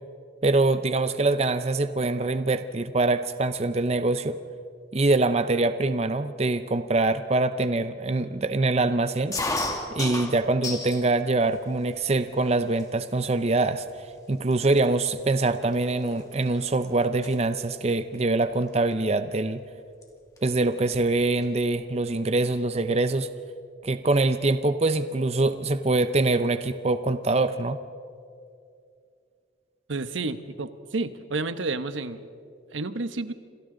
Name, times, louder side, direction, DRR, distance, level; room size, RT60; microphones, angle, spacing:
voice 1, 0.4-4.4 4.9-9.4 10.0-13.8 14.3-19.6 20.4-23.3 23.8-27.8, right 2 dB, 35° right, 11 dB, 0.6 m, -24 dB
sound 1, 9.3-11.1 11.5-12.1 12.8-12.9 13.2-13.5 14.2-14.3 14.5-16.8 17.0-17.3 18.7-18.9 20.0-20.1 20.4-20.5 20.7-21.6, left 2 dB, 20° left, 2.2 m, -33 dB
voice 2, 29.9-32.3 32.7-33.3, right 3 dB, 85° right, 11 dB, 1.0 m, -30 dB
28.5 x 26.5 x 3.9 m, 2.3 s
head